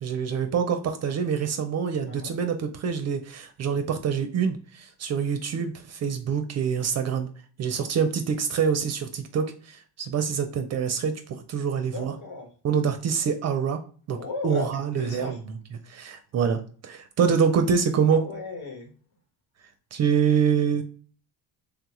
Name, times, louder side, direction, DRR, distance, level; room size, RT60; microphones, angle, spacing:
voice 1, 0.0-7.3 7.6-12.2 12.6-13.8 14.1-14.2 14.4-15.5 15.9-18.3 19.9-20.8, right 6 dB, 40° right, 7 dB, 0.4 m, -25 dB
voice 2, 11.8-12.5 14.1-14.7 14.9-15.4 18.1-18.9, left 3 dB, 65° left, 2 dB, 1.3 m, -35 dB
3.4 x 2.3 x 2.9 m, 0.42 s
cardioid pair, 120°, 39 cm